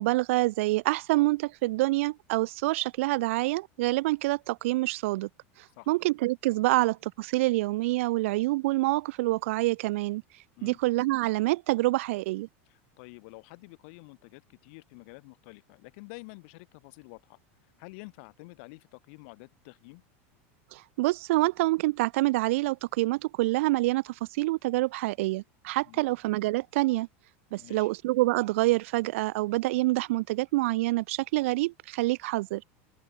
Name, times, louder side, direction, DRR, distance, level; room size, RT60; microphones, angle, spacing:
voice 1, 0.0-5.3 5.9-10.2 10.6-12.5 20.7-27.1 27.5-32.6, right 20 dB, 70° right, 0.4 m, -26 dB
voice 2, 12.7-17.4 17.8-20.0 25.9-26.1 27.6-27.9, left 30 dB, 60° left, 2.1 m, -49 dB
open air
supercardioid pair, 150°, 7 cm